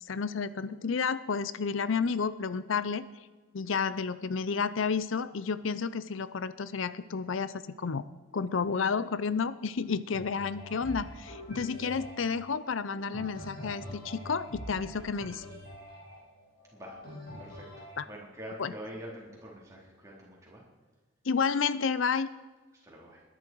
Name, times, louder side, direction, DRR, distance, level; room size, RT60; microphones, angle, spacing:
voice 1, 0.1-3.1 3.5-8.0 8.3-15.4 18.0-18.1 18.6-18.7 21.3-22.3, left 5 dB, 70° left, 15 dB, 0.6 m, -31 dB
sound 1, 10.1-18.0, equal, 50° left, 5.9 m, -45 dB
voice 2, 17.4-20.6 22.8-23.2, equal, 15° right, -4 dB, 4.0 m, -45 dB
20.5 x 11.0 x 4.7 m, 1.3 s
head